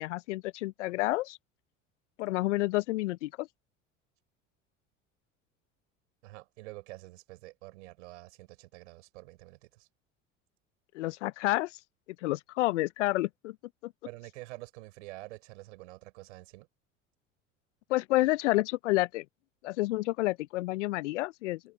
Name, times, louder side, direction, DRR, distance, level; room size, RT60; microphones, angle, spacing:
voice 1, 0.0-1.4 2.2-3.5 10.9-11.7 12.2-13.5 13.8-13.9 17.9-19.2 19.6-21.6, left 18 dB, 65° left, 1.2 m, -29 dB
voice 2, 6.2-9.9 14.0-16.7, right 20 dB, 65° right, 5.1 m, -47 dB
figure-of-eight pair, 70°, 38 cm